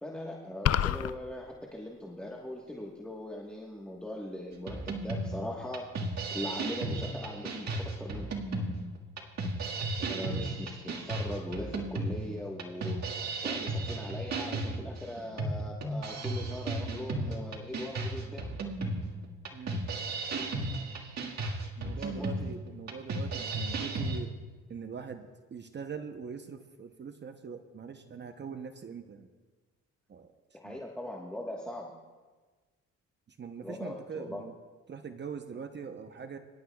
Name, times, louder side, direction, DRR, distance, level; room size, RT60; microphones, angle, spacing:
voice 1, 0.0-5.9 6.3-8.3 10.1-13.0 13.4-18.5 22.0-22.3 30.5-31.9 33.6-34.4, left 1 dB, 5° left, -2 dB, 1.3 m, -40 dB
sound 1, 0.7-1.1, left 11 dB, 55° left, 0.5 m, -26 dB
sound 2, 4.7-24.2, right 2 dB, 60° right, 1.8 m, -35 dB
voice 2, 10.0-10.5 19.5-19.9 21.8-24.4 24.7-29.3 30.1-30.3 30.6-30.8 33.3-34.5 34.9-36.4, right 6 dB, 35° right, 7 dB, 0.8 m, -42 dB
24.5 x 11.5 x 2.3 m, 1.4 s
cardioid pair, 90°, 30 cm